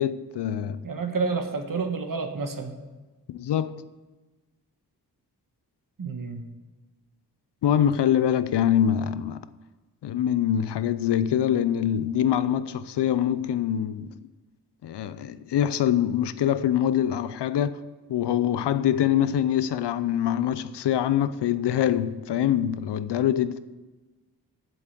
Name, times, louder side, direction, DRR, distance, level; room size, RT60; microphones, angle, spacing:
voice 1, 0.0-0.8 3.3-3.8 7.6-9.4 10.0-14.1 14.8-17.8 18.1-23.7, left 10 dB, 85° left, 0.6 m, -24 dB
voice 2, 0.8-2.8 6.0-6.4, right 4 dB, 55° right, 1.5 m, -29 dB
7.9 x 7.6 x 8.2 m
cardioid pair, 50°, 40 cm